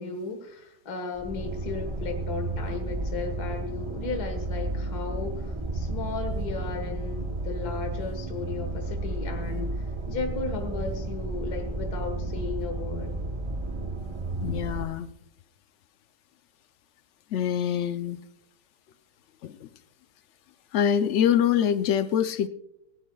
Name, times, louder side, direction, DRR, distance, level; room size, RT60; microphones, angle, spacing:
voice 1, 0.0-13.1, left 4 dB, 60° left, 5 dB, 2.0 m, -35 dB
sound 1, 1.2-14.9, right 2 dB, 25° right, 0.6 m, -32 dB
voice 2, 14.4-15.1 17.3-18.2 19.4-19.7 20.7-22.5, left 9 dB, 90° left, 11 dB, 0.6 m, -24 dB
18.0 x 18.0 x 2.3 m, 0.77 s
omnidirectional pair, 1.9 m